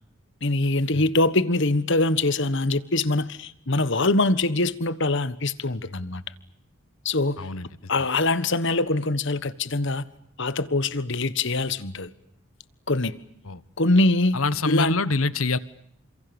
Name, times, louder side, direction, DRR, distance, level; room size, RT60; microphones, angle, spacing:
voice 1, 0.4-6.2 7.0-7.4 7.9-10.0 10.4-12.1 12.9-13.2 13.8-14.9, left 2 dB, 60° left, 1.5 m, -23 dB
voice 2, 7.4-7.7 13.4-13.6 14.3-15.6, left 3 dB, 80° left, 1.3 m, -25 dB
30.0 x 27.0 x 7.1 m
head